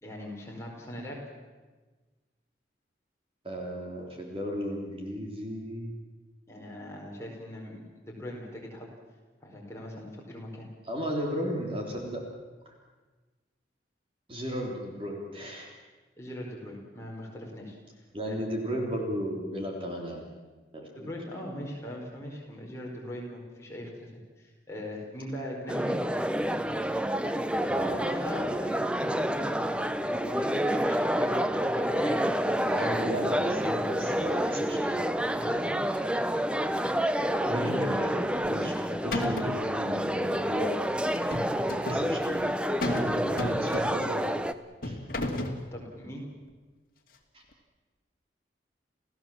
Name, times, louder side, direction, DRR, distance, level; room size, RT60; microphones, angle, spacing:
voice 1, 0.0-1.2 6.5-7.8 8.1-8.9 9.4-10.7 16.2-17.8 18.2-18.3 20.9-24.1 24.4-26.0 27.8-33.2 35.3-35.9 37.5-37.9 45.7-46.2, left 1 dB, 15° left, -2 dB, 4.6 m, -41 dB
voice 2, 3.4-5.9 10.9-12.2 12.7-12.8 14.3-15.7 18.1-20.3 20.7-21.1 27.6-28.5 32.6-35.0 35.9-36.0 37.4-40.8 41.8-42.5 42.8-44.3 44.8-45.0 47.3-47.4, equal, 30° right, 0 dB, 3.4 m, -35 dB
sound 1, 25.7-44.5, equal, 5° right, 0.6 m, -28 dB
sound 2, 38.4-38.8 39.1-39.6 41.1-42.1 42.8-43.1 43.4-44.1 44.8-45.6, left 1 dB, 50° left, 2.4 m, -32 dB
29.0 x 16.5 x 7.5 m, 1.3 s
head